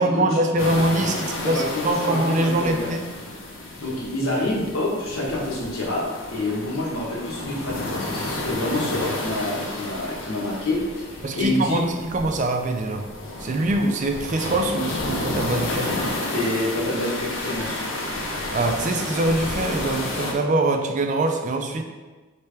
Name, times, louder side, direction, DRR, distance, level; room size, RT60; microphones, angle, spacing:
voice 1, 0.0-3.0 11.2-13.0 13.4-15.9 18.5-21.8, right 2 dB, 35° right, 4 dB, 0.3 m, -23 dB
sound 1, 0.6-20.3, left 2 dB, 65° left, 0.7 m, -31 dB
voice 2, 1.4-2.9 3.8-6.0 6.3-11.8 16.3-17.8, left 1 dB, 80° left, -4 dB, 1.2 m, -27 dB
4.4 x 3.3 x 3.3 m, 1.3 s
head